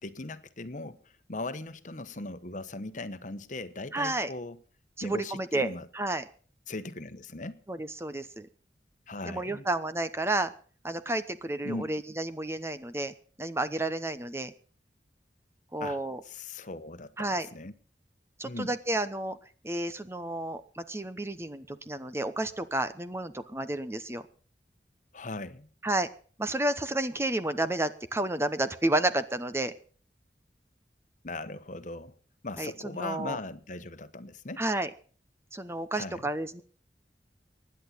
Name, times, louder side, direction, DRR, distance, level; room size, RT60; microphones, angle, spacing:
voice 1, 0.0-4.6 5.0-5.9 6.7-7.6 9.1-9.7 11.6-11.9 15.8-17.7 18.4-18.7 25.1-25.7 31.2-32.1 32.4-34.6 35.9-36.3, left 2 dB, 45° left, 1.1 m, -39 dB
voice 2, 3.9-4.3 5.0-6.2 7.7-8.5 9.3-10.5 10.8-14.5 15.7-16.2 17.2-17.5 18.4-19.4 19.6-24.2 25.8-26.1 26.4-29.7 32.6-33.4 34.6-34.9 35.5-36.6, right 2 dB, 15° right, 0.9 m, -31 dB
24.5 x 10.5 x 4.1 m
head